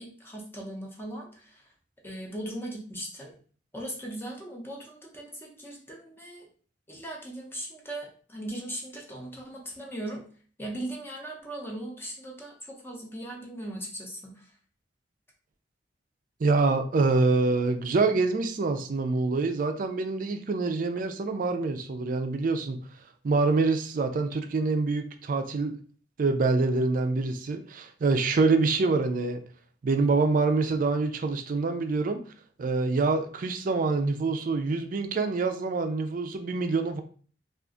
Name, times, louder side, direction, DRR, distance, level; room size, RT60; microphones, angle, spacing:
voice 1, 0.0-1.7 2.0-3.3 3.7-6.5 6.9-10.2 10.6-14.6, right 1 dB, 15° left, -1 dB, 0.6 m, -39 dB
voice 2, 16.4-22.8 23.2-25.8 26.2-29.4 29.8-32.2 32.6-37.0, right 3 dB, 50° right, 7 dB, 0.4 m, -26 dB
2.4 x 2.3 x 3.7 m, 0.43 s
head